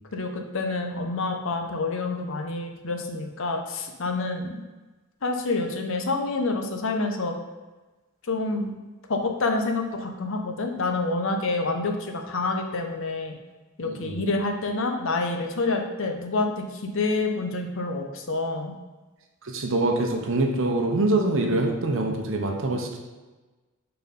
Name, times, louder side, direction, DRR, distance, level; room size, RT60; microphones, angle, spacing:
voice 1, 0.1-4.6 5.2-7.3 8.3-8.7 9.1-13.3 13.8-18.7, left 3 dB, 60° left, 4 dB, 0.7 m, -27 dB
voice 2, 13.9-14.2 19.4-23.0, right 2 dB, 65° right, 2 dB, 0.8 m, -25 dB
4.4 x 4.2 x 5.3 m, 1.2 s
head